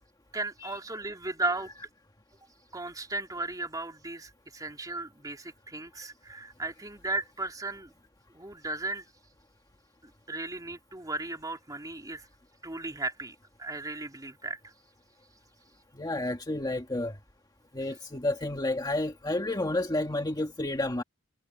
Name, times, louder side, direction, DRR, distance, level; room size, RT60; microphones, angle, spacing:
voice 1, 0.3-1.7 2.7-7.9 8.3-9.0 10.0-12.3 12.6-14.7, right 2 dB, 15° right, 3.2 m, -36 dB
voice 2, 15.9-17.2 17.7-21.0, left 2 dB, 20° left, 1.8 m, -30 dB
head